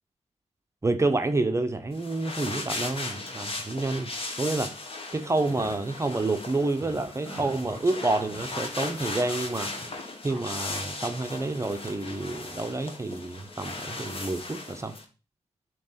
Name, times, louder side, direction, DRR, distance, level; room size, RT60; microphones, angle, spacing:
voice 1, 0.8-4.1 4.4-4.8 5.1-9.7 10.2-14.9, right 2 dB, 25° right, 7 dB, 0.6 m, -28 dB
sound 1, 1.9-15.0, left 2 dB, 45° left, 1.2 m, -37 dB
sound 2, 5.2-5.7 6.1-6.3 6.6-8.6 8.8-9.9 10.3-10.4, equal, 15° left, 2.4 m, -42 dB
7.3 x 2.9 x 5.6 m, 0.33 s
wide cardioid pair, 135°, 13 cm